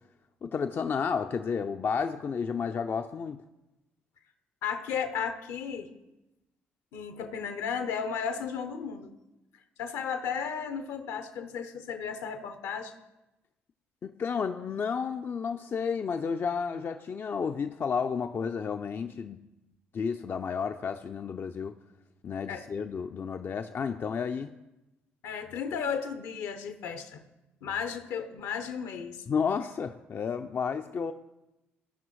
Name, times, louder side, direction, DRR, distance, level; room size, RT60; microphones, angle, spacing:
voice 1, 0.4-3.4 14.0-19.4 19.9-21.7 22.2-24.6 29.3-31.1, left 6 dB, 45° left, 0.4 m, -31 dB
voice 2, 4.6-5.9 6.9-9.1 9.8-12.9 22.5-22.7 25.2-27.2 27.6-29.2, left 7 dB, 70° left, 0.8 m, -34 dB
15.5 x 5.5 x 3.1 m
hypercardioid pair, 50°, 5 cm